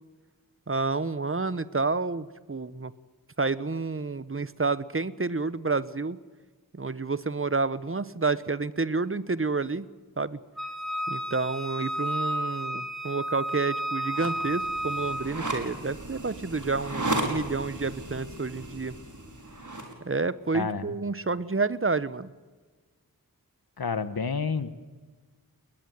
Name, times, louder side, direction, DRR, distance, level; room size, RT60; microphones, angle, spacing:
voice 1, 0.7-2.9 3.4-6.2 6.7-9.9 10.2-10.4 11.1-18.9 20.0-22.3, right 3 dB, 35° right, 16 dB, 1.0 m, -29 dB
Wind instrument woodwind instrument, 10.6-15.3, right 1 dB, ahead, 3.1 m, -32 dB
sound 1, 14.1-19.9, right 2 dB, 55° right, 5.1 m, -35 dB
voice 2, 20.5-20.9 23.8-24.7, left 5 dB, 85° left, 13 dB, 1.3 m, -29 dB
21.0 x 20.5 x 9.5 m, 1.3 s
wide cardioid pair, 55°, 36 cm